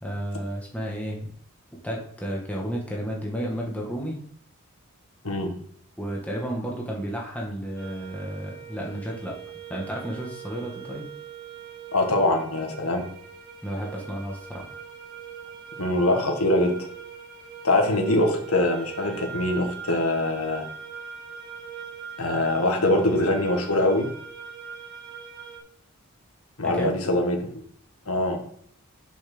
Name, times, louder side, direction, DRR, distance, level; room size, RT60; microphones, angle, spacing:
voice 1, 0.0-1.2 1.8-4.2 6.0-9.3 9.7-11.1 13.6-14.7 26.6-26.9, equal, 5° left, -3 dB, 1.9 m, -32 dB
voice 2, 5.2-5.6 11.9-13.1 15.8-16.8 17.6-20.7 22.2-24.1 26.6-27.5 28.1-28.4, left 1 dB, 80° left, 3 dB, 1.8 m, -23 dB
sound 1, 7.8-25.6, right 7 dB, 45° right, 2.0 m, -41 dB
7.1 x 6.3 x 6.2 m, 0.63 s
head